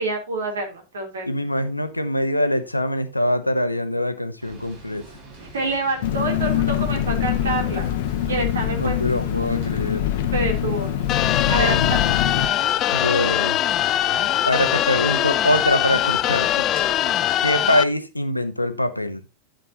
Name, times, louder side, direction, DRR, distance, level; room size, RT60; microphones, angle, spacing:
voice 1, 0.0-1.3 5.4-7.9 8.3-9.0 10.3-10.9 11.5-12.1, right 3 dB, 65° right, 3 dB, 3.3 m, -27 dB
voice 2, 1.2-5.0 8.8-10.1 12.9-13.6 14.4-16.6 17.4-19.2, left 1 dB, 85° left, 10 dB, 1.0 m, -23 dB
sound 1, 4.4-17.1, right 3 dB, 50° right, 5.2 m, -45 dB
Engine, 6.0-12.5, left 10 dB, 50° left, 1.0 m, -24 dB
sound 2, 11.1-17.8, left 12 dB, 35° left, 0.5 m, -22 dB
11.5 x 7.6 x 2.9 m, 0.25 s
figure-of-eight pair, 90°, 0 cm